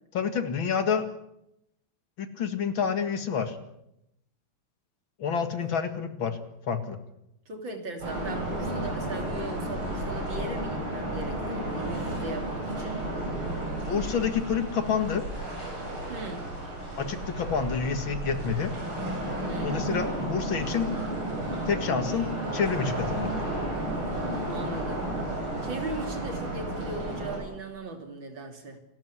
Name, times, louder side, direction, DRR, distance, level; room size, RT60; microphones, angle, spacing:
voice 1, 0.1-1.1 2.2-3.6 5.2-6.4 6.7-7.0 13.9-15.3 17.0-18.7 19.6-20.9 21.7-23.3, left 6 dB, 70° left, 9 dB, 2.6 m, -28 dB
voice 2, 7.5-13.0 16.1-16.5 19.5-19.9 24.5-25.1 25.4-28.8, right 2 dB, 60° right, 5 dB, 3.8 m, -38 dB
sound 1, 8.0-27.4, right 1 dB, 80° right, 8.6 m, -32 dB
28.0 x 13.5 x 9.8 m, 0.84 s
omnidirectional pair, 2.3 m